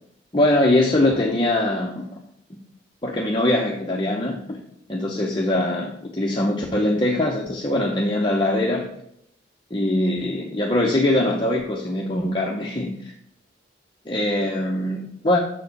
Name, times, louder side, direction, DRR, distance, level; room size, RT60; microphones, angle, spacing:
voice 1, 0.3-2.2 3.0-4.6 4.9-8.9 9.7-13.1 14.1-15.4, left 1 dB, 25° left, -1 dB, 0.8 m, -22 dB
6.6 x 4.8 x 6.6 m, 0.73 s
head